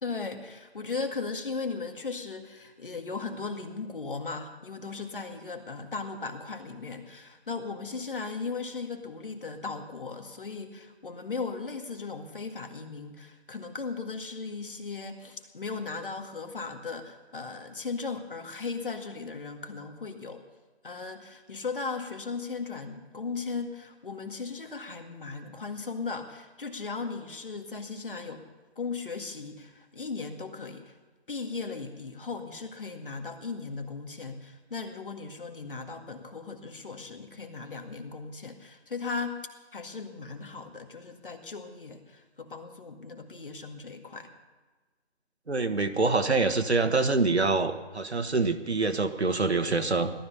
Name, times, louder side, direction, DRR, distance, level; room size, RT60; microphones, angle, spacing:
voice 1, 0.0-20.4 20.8-28.4 28.8-31.0 31.3-39.4 39.7-44.3, left 4 dB, 50° left, 6 dB, 2.0 m, -37 dB
voice 2, 45.5-50.1, right 3 dB, 75° right, 9 dB, 1.5 m, -25 dB
17.5 x 13.0 x 5.6 m, 1.3 s
figure-of-eight pair, 155°, 33 cm